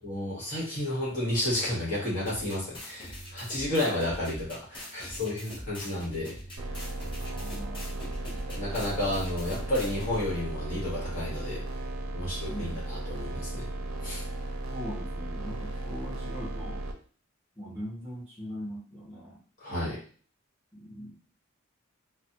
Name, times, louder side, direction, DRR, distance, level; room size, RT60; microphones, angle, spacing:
voice 1, 0.0-6.3 8.5-11.6 12.1-13.7 14.0-14.2 19.6-20.0, left 1 dB, 40° left, -7 dB, 1.4 m, -31 dB
sound 1, 2.2-10.2, equal, 25° left, 0.8 m, -43 dB
sound 2, 6.6-16.9, right 1 dB, 65° right, 0.5 m, -35 dB
voice 2, 7.2-7.9 12.5-12.7 14.7-16.8 17.6-19.4 20.7-21.2, equal, 5° right, -6 dB, 0.8 m, -40 dB
3.2 x 2.1 x 2.8 m, 0.43 s
head